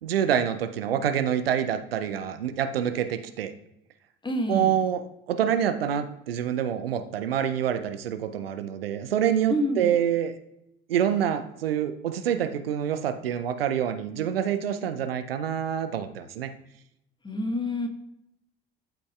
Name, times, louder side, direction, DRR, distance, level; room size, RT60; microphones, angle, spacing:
voice 1, 0.0-3.5 4.5-10.3 10.9-16.5, right 9 dB, 80° right, 9 dB, 0.5 m, -26 dB
voice 2, 4.2-4.7 9.5-9.9 17.2-17.9, left 1 dB, 15° left, 4 dB, 1.3 m, -27 dB
11.5 x 5.1 x 2.3 m, 0.82 s
figure-of-eight pair, 55°, 29 cm